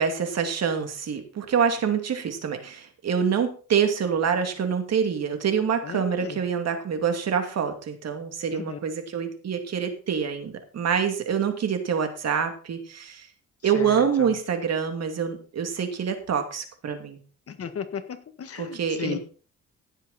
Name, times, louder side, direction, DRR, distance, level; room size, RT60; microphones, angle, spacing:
voice 1, 0.0-13.3 13.6-17.2 18.5-19.2, right 7 dB, 60° right, 6 dB, 2.7 m, -26 dB
voice 2, 5.8-6.4 8.5-8.8 13.8-14.0 17.5-19.2, left 7 dB, 50° left, 9 dB, 1.7 m, -35 dB
16.5 x 7.3 x 4.3 m, 0.39 s
cardioid pair, 90°, 30 cm